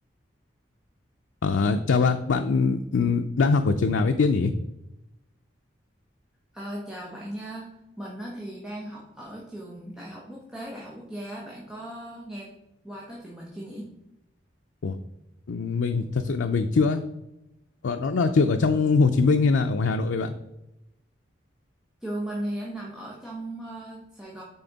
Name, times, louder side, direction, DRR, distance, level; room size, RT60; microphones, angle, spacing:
voice 1, 1.4-4.5 14.8-15.0 15.5-17.0 17.8-20.3, left 4 dB, 90° left, 6 dB, 0.5 m, -22 dB
voice 2, 6.5-7.7 8.0-12.5 12.8-13.9 22.0-24.4, right 1 dB, 5° right, -4 dB, 1.0 m, -37 dB
9.5 x 4.2 x 4.0 m, 0.90 s
head